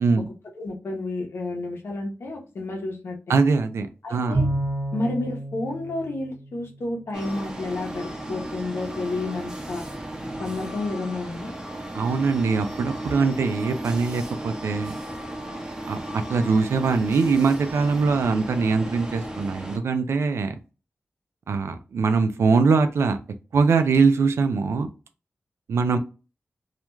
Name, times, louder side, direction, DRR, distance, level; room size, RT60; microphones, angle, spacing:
voice 1, 0.6-3.2 4.0-4.5 4.9-9.8 10.4-11.5, left 2 dB, 70° left, 1 dB, 0.8 m, -30 dB
voice 2, 3.3-4.4 11.9-14.9 15.9-16.0 16.3-20.5 21.5-23.2 23.5-24.9 25.7-26.0, right 4 dB, 85° right, 8 dB, 0.4 m, -22 dB
Bowed string instrument, 4.3-7.0, right 1 dB, 50° right, 1.1 m, -29 dB
sound 1, 7.1-19.8, right 1 dB, 15° right, 0.6 m, -35 dB
2.4 x 2.2 x 3.0 m, 0.33 s
cardioid pair, 65°, 4 cm